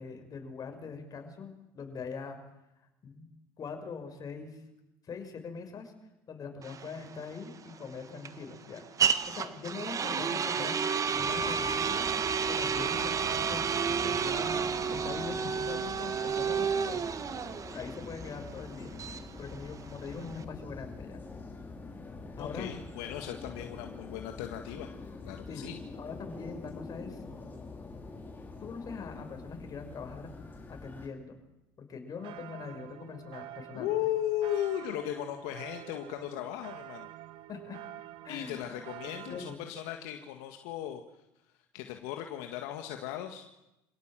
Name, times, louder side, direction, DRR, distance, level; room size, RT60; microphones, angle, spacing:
voice 1, 0.0-2.4 3.0-3.3 3.6-4.6 5.0-5.9 6.3-8.8 9.3-10.8 11.1-12.1 12.5-14.6 14.9-17.1 17.7-19.0 19.4-21.2 22.4-22.7 25.5-25.7 25.9-27.2 28.6-30.3 30.7-31.4 31.8-33.9 37.5-37.8 38.2-38.7 39.0-39.6, left 5 dB, 40° left, 5 dB, 5.9 m, -42 dB
sound 1, 6.6-20.4, right 6 dB, 35° right, 1.6 m, -31 dB
sound 2, 11.1-31.1, left 3 dB, 20° left, 5.3 m, -45 dB
voice 2, 22.4-24.9 25.2-25.8 33.7-37.1 38.3-41.0 41.7-43.4, left 12 dB, 80° left, 5 dB, 1.8 m, -36 dB
sound 3, 32.2-39.6, right 14 dB, 65° right, 1.4 m, -47 dB
26.5 x 17.0 x 7.7 m, 0.93 s
supercardioid pair, 85°, 9 cm